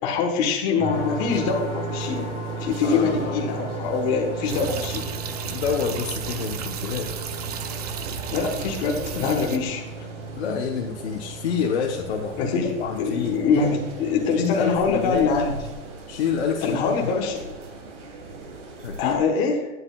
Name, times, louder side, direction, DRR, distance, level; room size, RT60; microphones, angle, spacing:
voice 1, 0.0-2.3 2.6-5.1 8.3-9.8 12.4-15.5 16.6-17.5 19.0-19.7, left 5 dB, 20° left, 0 dB, 1.2 m, -24 dB
sound 1, 0.8-15.6, right 2 dB, 15° right, 3.1 m, -36 dB
sound 2, 0.9-19.2, right 2 dB, 65° right, 3.1 m, -40 dB
voice 2, 2.8-3.5 5.5-7.2 10.4-12.4 12.8-13.4 14.3-15.4 16.1-17.1 18.8-19.2, left 7 dB, 55° left, 0 dB, 1.0 m, -27 dB
sound 3, 4.5-9.6, right 8 dB, 35° right, 0.5 m, -34 dB
12.0 x 9.8 x 2.3 m, 1.1 s
supercardioid pair, 175°, 38 cm